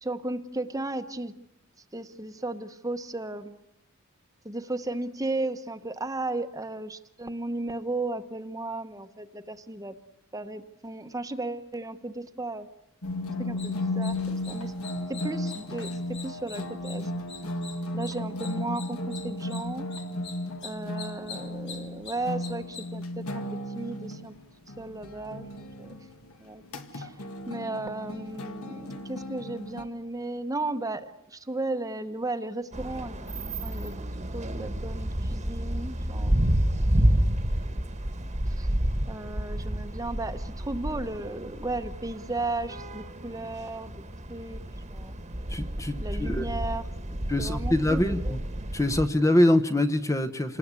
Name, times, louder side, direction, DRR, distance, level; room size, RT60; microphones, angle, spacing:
voice 1, 0.0-1.3 1.9-3.6 4.4-9.9 10.3-12.7 13.4-14.7 15.1-15.9 16.2-17.1 17.9-19.8 20.6-23.4 23.7-24.3 24.8-25.9 26.4-26.6 26.9-27.2 27.5-33.1 33.6-33.9 34.3-36.4 36.9-37.4 38.5-38.7 39.0-44.0 44.3-44.6 44.9-45.1 46.0-46.9 47.4-48.4, right 2 dB, 15° right, 10 dB, 1.0 m, -35 dB
sound 1, 13.0-29.8, left 1 dB, 80° left, 2.3 m, -35 dB
sound 2, 13.6-22.9, left 6 dB, 50° left, 2.8 m, -46 dB
sound 3, 32.7-49.1, right 1 dB, 30° right, 1.4 m, -30 dB
voice 2, 45.5-46.5 47.3-48.2 48.7-50.6, left 1 dB, 15° left, 9 dB, 0.9 m, -24 dB
28.0 x 20.0 x 8.3 m, 0.83 s
head